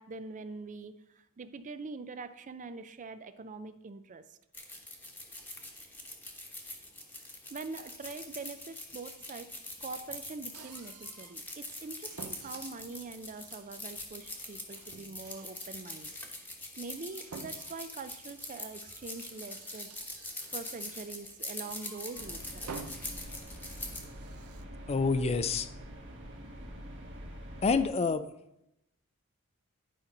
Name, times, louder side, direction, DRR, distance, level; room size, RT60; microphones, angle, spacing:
voice 1, 0.0-4.4 7.5-9.5 9.8-16.2 16.8-19.9 20.5-22.7, right 4 dB, 35° right, 12 dB, 0.4 m, -44 dB
sound 1, 4.5-24.0, left 2 dB, 10° left, 1.1 m, -43 dB
sound 2, 10.5-11.4 11.8-21.2 21.6-22.3 22.6-24.6, right 5 dB, 75° right, 0.7 m, -51 dB
sound 3, 22.2-27.9, equal, 55° right, 1.5 m, -45 dB
voice 2, 24.9-25.7 27.6-28.3, left 4 dB, 30° left, 11 dB, 0.4 m, -27 dB
10.5 x 5.2 x 4.2 m, 0.82 s
head